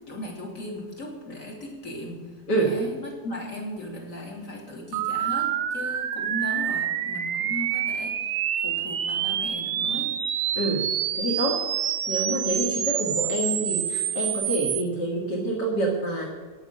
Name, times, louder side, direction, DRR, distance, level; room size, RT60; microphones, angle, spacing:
voice 1, 0.1-2.2 2.6-8.3 8.6-10.1, left 1 dB, 45° left, -1 dB, 3.5 m, -37 dB
voice 2, 2.5-2.8 10.5-10.9 11.1-11.7 12.1-16.2, right 2 dB, 70° left, -2 dB, 2.6 m, -27 dB
sound 1, 4.9-14.8, right 10 dB, 65° right, 0.7 m, -27 dB
13.0 x 10.5 x 6.7 m, 1.4 s
omnidirectional pair, 1.9 m